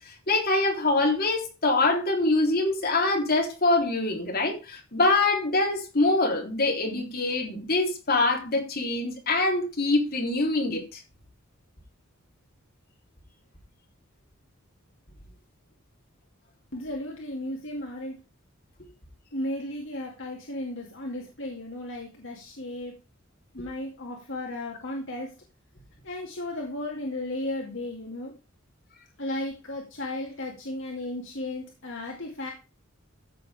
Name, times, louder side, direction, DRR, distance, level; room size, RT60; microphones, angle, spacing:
voice 1, 0.3-11.0, left 2 dB, 45° left, 3.7 m, -24 dB
voice 2, 16.7-18.2 19.3-23.0 23.5-25.3 26.0-28.3 29.2-32.5, left 1 dB, 65° left, 2.4 m, -34 dB
14.5 x 6.8 x 3.6 m
head